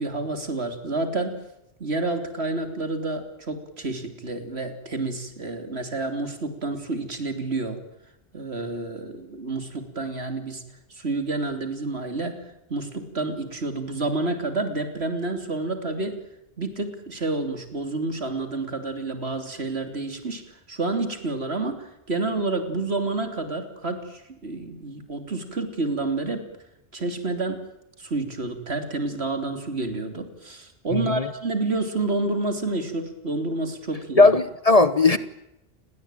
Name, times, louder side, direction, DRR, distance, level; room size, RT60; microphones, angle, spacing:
voice 1, 0.0-1.4 1.8-7.8 8.3-10.6 10.9-12.4 12.7-16.2 16.6-20.4 20.7-26.5 26.9-27.6 28.0-34.3, right 2 dB, 85° right, 8 dB, 3.5 m, -29 dB
voice 2, 30.9-31.3 34.2-35.2, left 3 dB, 35° left, 14 dB, 1.2 m, -17 dB
29.5 x 21.5 x 9.1 m, 0.84 s
omnidirectional pair, 1.1 m